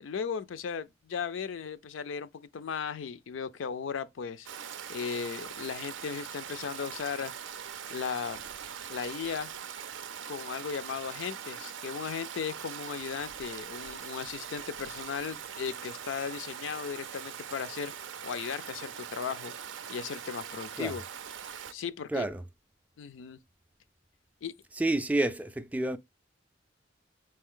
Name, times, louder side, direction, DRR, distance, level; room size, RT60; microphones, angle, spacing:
voice 1, 0.0-4.5 4.9-7.3 7.9-8.5 8.9-9.5 10.3-17.9 18.2-19.5 19.9-21.0 21.7-22.3 23.0-23.4 24.4-24.5, left 6 dB, 85° left, 0.4 m, -36 dB
Stream, 4.5-21.7, right 8 dB, 80° right, 0.5 m, -42 dB
voice 2, 22.1-22.4 24.7-26.0, right 2 dB, 10° right, 0.3 m, -29 dB
4.3 x 3.2 x 3.6 m
head